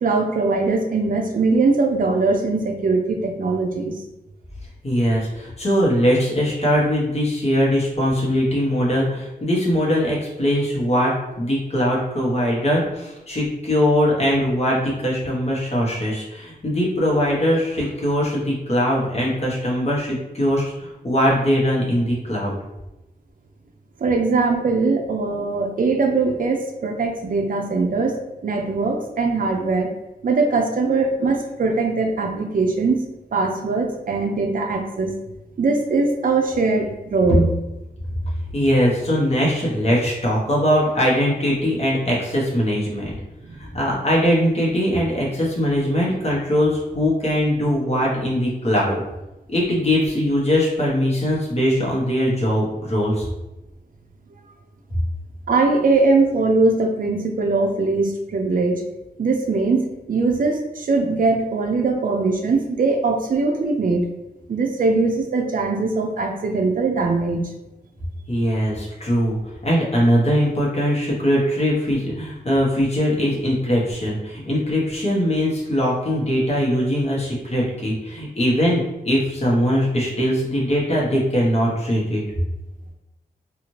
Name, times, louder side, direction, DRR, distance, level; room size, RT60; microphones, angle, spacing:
voice 1, 0.0-4.0 24.0-29.9 30.2-33.0 33.3-35.2 35.6-37.5 43.5-43.6 55.5-58.8 59.2-64.0 64.5-67.5, right 3 dB, 55° right, 3 dB, 0.4 m, -21 dB
voice 2, 4.8-22.6 38.5-43.1 43.6-49.0 49.5-53.3 68.3-69.4 69.6-82.2, equal, 40° left, -5 dB, 1.0 m, -21 dB
2.7 x 2.4 x 3.1 m, 0.96 s
wide cardioid pair, 110°, 17 cm